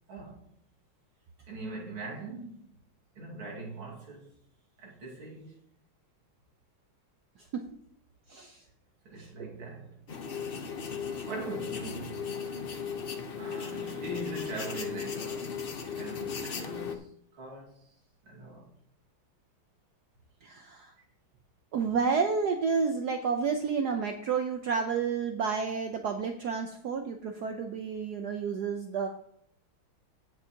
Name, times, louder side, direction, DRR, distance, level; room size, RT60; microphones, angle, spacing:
voice 1, 0.1-0.5 1.5-2.7 3.1-4.3 4.8-5.6 9.0-10.0 10.9-12.3 13.4-15.6 15.9-17.8 18.2-18.7, right 2 dB, 85° right, 3.0 m, -42 dB
voice 2, 8.3-8.6 9.2-9.5 20.4-20.9 21.7-29.1, right 5 dB, 65° right, 1.1 m, -30 dB
sound 1, 10.1-16.9, left 6 dB, 65° left, 0.5 m, -36 dB
17.5 x 6.2 x 2.9 m
omnidirectional pair, 2.3 m